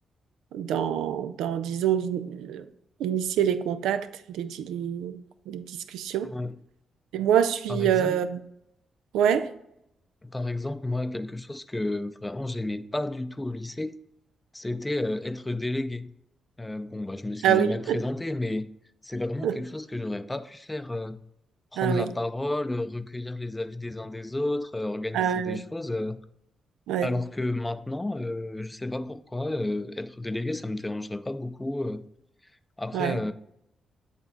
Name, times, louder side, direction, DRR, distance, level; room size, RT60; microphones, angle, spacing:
voice 1, 0.5-2.7 3.0-5.2 5.5-6.3 7.1-8.4 9.1-9.5 17.4-18.0 19.4-19.6 21.8-22.1 25.1-25.6 26.9-27.1 32.9-33.2, right 9 dB, 85° right, 0.4 m, -26 dB
voice 2, 6.2-6.6 7.7-8.2 10.2-13.9 14.5-16.1 16.6-18.7 19.0-21.2 21.7-26.2 27.0-32.0 32.8-33.3, left 2 dB, 15° left, 0.5 m, -31 dB
8.1 x 3.3 x 4.0 m
supercardioid pair, 55°, 0 cm